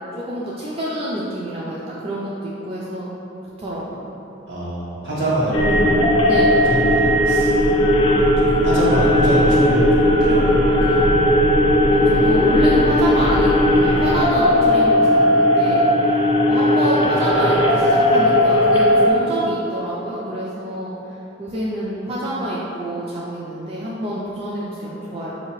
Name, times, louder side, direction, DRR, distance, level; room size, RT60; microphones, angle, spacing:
voice 1, 0.1-3.1 3.6-4.0 6.3-6.8 11.8-15.9 16.5-20.9 21.4-25.4, equal, 30° right, -6 dB, 0.4 m, -27 dB
voice 2, 4.5-6.4 6.6-7.6 8.6-11.1, equal, 70° right, -8 dB, 1.3 m, -25 dB
sound 1, 5.5-19.1, left 1 dB, 30° left, 0.4 m, -16 dB
4.8 x 2.8 x 3.0 m, 3.0 s
head